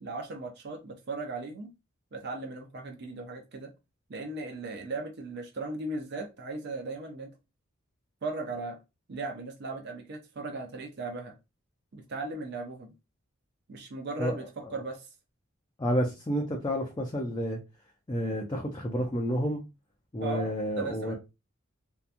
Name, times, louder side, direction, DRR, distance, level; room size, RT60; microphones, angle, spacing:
voice 1, 0.0-1.7 2.1-3.7 4.1-7.3 8.2-8.8 9.1-11.4 11.9-12.9 13.7-15.1 20.2-21.1, right 3 dB, 50° right, 0.5 m, -37 dB
voice 2, 15.8-17.6 18.1-19.6 20.1-21.1, equal, 20° left, 0.4 m, -30 dB
2.8 x 2.2 x 2.4 m
head